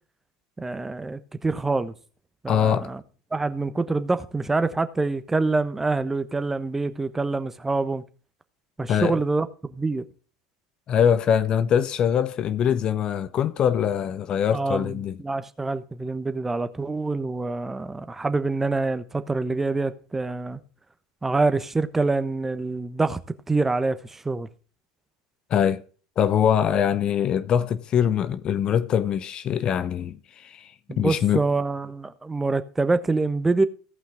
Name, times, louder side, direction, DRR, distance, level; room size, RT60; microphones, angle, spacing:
voice 1, 0.6-1.9 2.4-3.0 3.3-8.0 8.8-10.0 14.5-20.6 21.2-23.2 23.5-24.5 30.9-33.7, right 3 dB, 15° right, 1.1 m, -26 dB
voice 2, 2.5-2.9 8.9-9.2 10.9-15.2 25.5-25.8 26.2-30.7 31.0-31.4, left 8 dB, 40° left, 0.7 m, -23 dB
17.0 x 5.8 x 3.6 m
hypercardioid pair, 80°, 2 cm